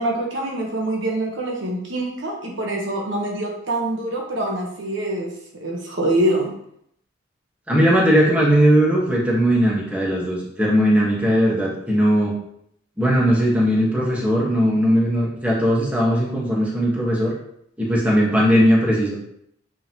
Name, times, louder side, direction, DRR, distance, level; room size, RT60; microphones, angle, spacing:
voice 1, 0.0-5.3 5.6-6.5, right 1 dB, 65° right, 0 dB, 1.2 m, -24 dB
voice 2, 7.7-12.3 13.0-17.3 17.8-19.2, equal, 5° right, -5 dB, 1.4 m, -18 dB
8.4 x 3.7 x 3.0 m, 0.73 s
head